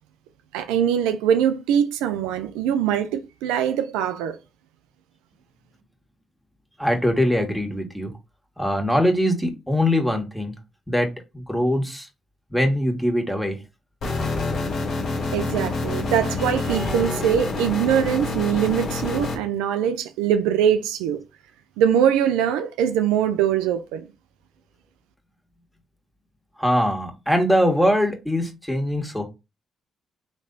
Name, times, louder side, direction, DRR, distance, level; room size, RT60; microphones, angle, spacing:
voice 1, 0.5-4.4 15.3-21.2 21.8-24.1, right 9 dB, 85° right, 0.4 m, -22 dB
voice 2, 6.8-8.1 8.6-10.5 10.9-11.1 11.3-12.1 12.5-13.6 26.6-29.3, equal, 5° left, 1.7 m, -22 dB
sound 1, 14.0-19.3, left 3 dB, 70° left, 1.6 m, -27 dB
4.1 x 3.2 x 3.9 m
hypercardioid pair, 50°, 0 cm